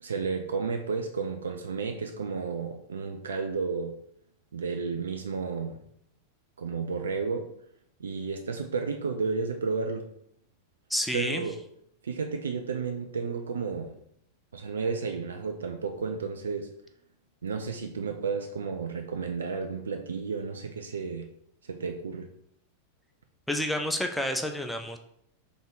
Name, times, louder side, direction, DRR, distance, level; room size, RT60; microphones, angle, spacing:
voice 1, 0.0-4.0 4.5-5.8 6.6-7.5 8.0-10.1 11.1-11.6 12.0-14.0 14.5-16.7 17.4-21.3 21.6-22.3, right 5 dB, 70° right, 5 dB, 0.3 m, -32 dB
voice 2, 10.9-11.4 23.5-25.0, left 1 dB, 5° left, 4 dB, 0.5 m, -29 dB
3.5 x 3.4 x 3.9 m, 0.70 s
figure-of-eight pair, 90°, 0 cm